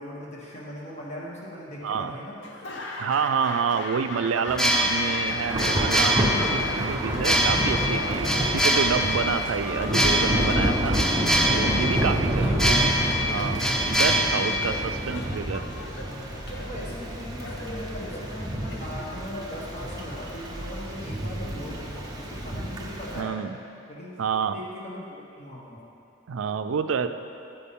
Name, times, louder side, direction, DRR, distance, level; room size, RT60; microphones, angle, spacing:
voice 1, 0.0-2.4 9.1-9.3 11.8-13.3 14.3-14.9 16.6-23.4 23.9-24.2 24.5-25.8, left 1 dB, 35° left, -5 dB, 1.4 m, -39 dB
voice 2, 1.8-2.2 3.0-11.0 11.5-15.7 23.2-23.6 24.2-24.6 26.3-27.1, right 6 dB, 75° right, 10 dB, 0.4 m, -28 dB
Laughter / Applause, 2.4-20.5, left 2 dB, 65° left, 0.8 m, -40 dB
sound 1, 4.5-15.3, equal, ahead, 0.4 m, -25 dB
Thunder / Rain, 5.5-23.2, equal, 20° right, 0.8 m, -29 dB
8.8 x 8.5 x 3.7 m, 2.7 s
head